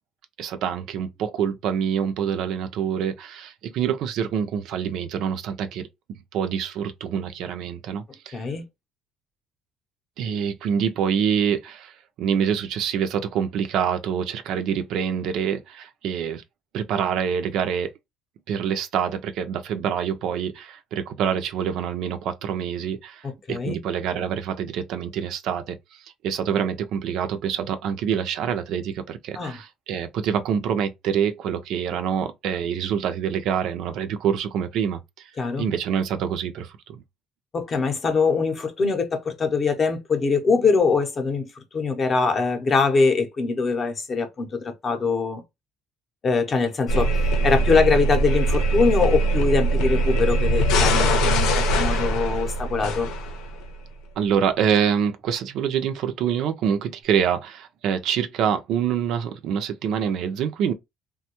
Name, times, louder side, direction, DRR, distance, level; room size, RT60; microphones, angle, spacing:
voice 1, 0.4-5.9 6.3-8.4 10.2-16.4 16.7-17.9 18.5-35.3 35.6-37.0 54.2-60.7, right 8 dB, 55° right, 0.4 m, -26 dB
voice 2, 8.3-8.6 23.5-23.8 29.3-29.6 35.4-35.6 37.5-45.4 46.2-47.1 47.4-53.1, left 4 dB, 25° left, 0.6 m, -23 dB
sound 1, 46.9-53.7, right 1 dB, 90° left, 0.7 m, -22 dB
3.4 x 2.2 x 2.8 m
cardioid pair, 175°, 0 cm